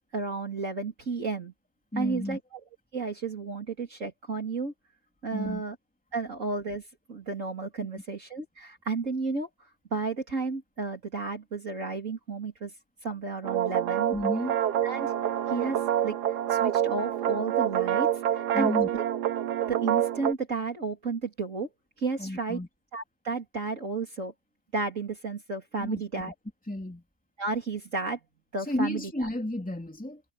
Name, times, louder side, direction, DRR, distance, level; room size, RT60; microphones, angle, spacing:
voice 1, 0.1-1.5 2.0-2.6 2.9-4.7 5.2-5.7 6.1-12.7 13.0-14.1 14.8-15.1 15.5-19.0 19.7-21.7 22.0-22.6 22.9-24.3 24.7-26.3 27.4-28.2 28.5-29.3, right 4 dB, 50° right, 3.4 m, -33 dB
voice 2, 1.9-2.4 5.3-5.6 14.1-14.6 18.5-18.9 22.2-22.7 25.8-26.2 26.7-27.0 28.7-30.2, left 1 dB, 5° left, 2.7 m, -32 dB
sound 1, 13.4-20.3, right 10 dB, 85° right, 1.5 m, -27 dB
omnidirectional pair, 1.7 m